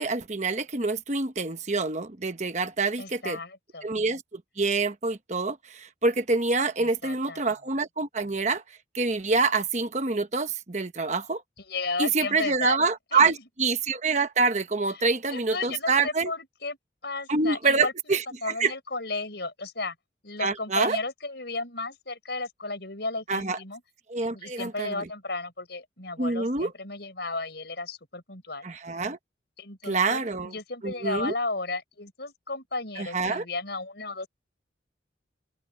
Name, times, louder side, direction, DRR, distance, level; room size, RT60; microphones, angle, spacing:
voice 1, 0.0-3.4 3.8-8.6 8.9-11.4 12.0-16.3 17.3-18.2 18.6-18.7 20.4-21.0 23.3-23.6 24.1-25.1 26.2-26.7 28.6-29.2 29.8-30.5 30.8-31.3 33.0-33.4, right 4 dB, 35° right, 1.1 m, -26 dB
voice 2, 3.0-3.9 6.8-7.4 11.7-13.4 15.0-16.8 17.0-20.0 20.2-23.8 24.3-28.7 29.6-34.3, left 3 dB, 60° left, 5.3 m, -34 dB
open air
head